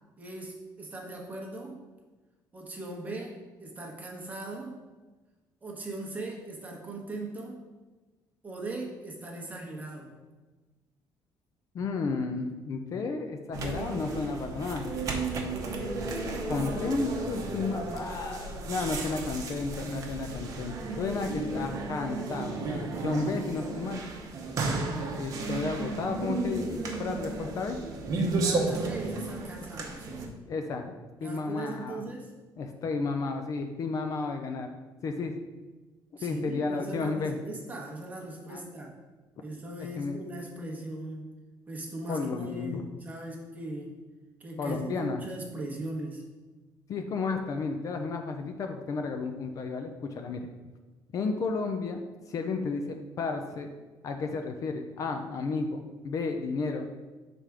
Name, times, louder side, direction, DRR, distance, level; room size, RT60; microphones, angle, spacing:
voice 1, 0.2-1.8 2.5-4.7 5.6-7.7 8.4-10.2 28.4-30.4 31.2-32.3 36.2-39.0 39.4-41.3 41.7-44.0 44.4-46.3, right 2 dB, 20° right, -1 dB, 1.0 m, -39 dB
voice 2, 11.7-14.9 16.5-24.0 25.2-27.8 30.5-30.9 31.2-32.0 32.6-34.7 35.0-35.3 36.2-37.4 38.5-38.6 39.8-40.2 42.1-42.8 44.6-45.2 46.9-50.5 51.1-53.7 54.0-56.9, left 4 dB, 40° left, 5 dB, 0.4 m, -32 dB
sound 1, 13.5-30.3, right 3 dB, 45° right, 0.9 m, -33 dB
5.8 x 3.4 x 4.8 m, 1.2 s
cardioid pair, 160°, 8 cm